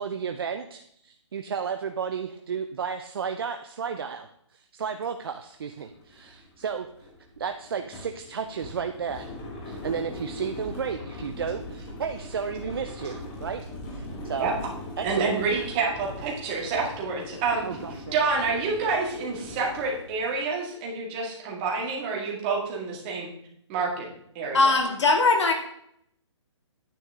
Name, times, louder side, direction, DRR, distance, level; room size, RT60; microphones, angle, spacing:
voice 1, 0.0-6.9 7.4-9.3 9.6-13.6 13.9-14.5 15.0-15.4 17.6-18.2, right 6 dB, 50° right, 6 dB, 0.6 m, -33 dB
sound 1, 5.2-5.3 5.7-20.4, left 1 dB, 20° left, 1.5 m, -40 dB
voice 2, 15.0-17.6 18.1-23.3 23.7-24.1 24.4-24.6, right 4 dB, 20° right, -2 dB, 2.0 m, -28 dB
voice 3, 24.5-25.5, left 3 dB, 65° left, 2 dB, 2.6 m, -20 dB
9.9 x 8.1 x 3.6 m, 0.70 s
hypercardioid pair, 165°, 16 cm